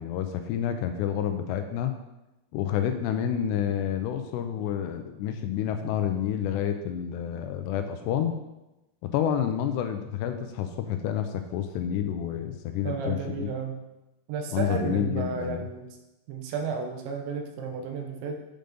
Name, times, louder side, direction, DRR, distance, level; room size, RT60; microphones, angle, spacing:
voice 1, 0.0-1.9 2.5-8.4 9.0-13.5 14.5-15.6, left 9 dB, 85° left, 7 dB, 2.6 m, -29 dB
voice 2, 12.8-13.8 14.3-16.0 16.3-18.5, right 5 dB, 85° right, 3 dB, 3.3 m, -33 dB
8.9 x 5.2 x 5.2 m, 0.98 s
omnidirectional pair, 5.1 m